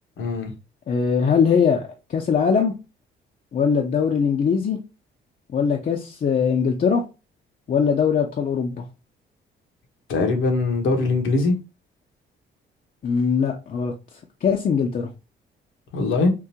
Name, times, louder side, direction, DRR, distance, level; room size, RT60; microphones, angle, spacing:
voice 1, 0.2-0.5 10.1-11.5 15.9-16.3, left 3 dB, 80° left, 1.1 m, -21 dB
voice 2, 0.9-1.8 2.1-2.7 3.5-4.8 5.5-7.0 7.7-8.8 13.0-13.9 14.4-15.1, left 6 dB, 45° left, 0.6 m, -21 dB
3.7 x 2.5 x 2.8 m
cardioid pair, 90°, 20 cm